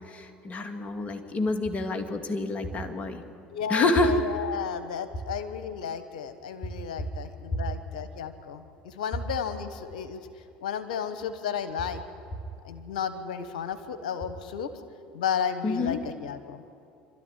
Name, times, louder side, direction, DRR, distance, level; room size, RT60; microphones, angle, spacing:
voice 1, 0.1-3.2 3.7-4.1 15.6-16.0, left 2 dB, 35° left, 5 dB, 2.4 m, -27 dB
voice 2, 3.5-10.2 10.6-12.0 12.6-14.7 15.1-16.6, left 7 dB, 85° left, 10 dB, 1.2 m, -33 dB
25.0 x 13.0 x 10.0 m, 2.5 s
hypercardioid pair, 70°, 4 cm